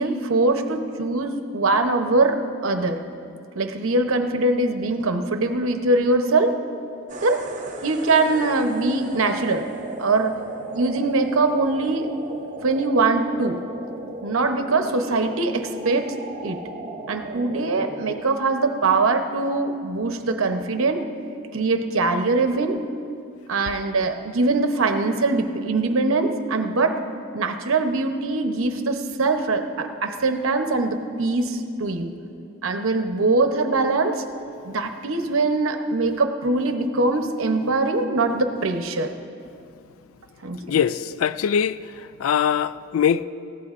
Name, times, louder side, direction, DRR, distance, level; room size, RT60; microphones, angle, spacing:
voice 1, 0.0-3.0 3.5-6.6 7.2-7.4 7.8-9.6 10.0-10.4 10.7-12.1 12.6-13.6 14.2-16.2 16.4-16.6 17.1-21.0 21.5-22.8 23.5-27.0 27.3-32.1 32.6-34.2 34.6-39.1 40.4-40.8, right 3 dB, 80° right, 0.8 m, -22 dB
sound 1, 7.1-18.2, right 2 dB, 35° right, 0.7 m, -36 dB
voice 2, 40.7-41.8 42.2-43.2, left 8 dB, 90° left, 0.3 m, -22 dB
19.5 x 15.0 x 2.5 m
head